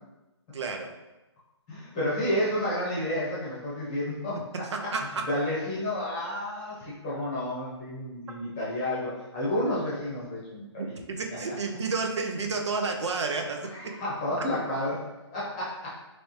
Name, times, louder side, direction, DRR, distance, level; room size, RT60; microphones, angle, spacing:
voice 1, 0.5-0.9 4.3-4.4 4.7-5.1 10.8-14.0, right 4 dB, 75° right, 3 dB, 0.7 m, -31 dB
voice 2, 1.7-4.4 4.8-4.9 5.3-10.9 11.5-11.6 13.7-15.9, left 1 dB, 15° left, -8 dB, 0.9 m, -31 dB
4.1 x 3.2 x 3.1 m, 1.0 s
hypercardioid pair, 175°, 15 cm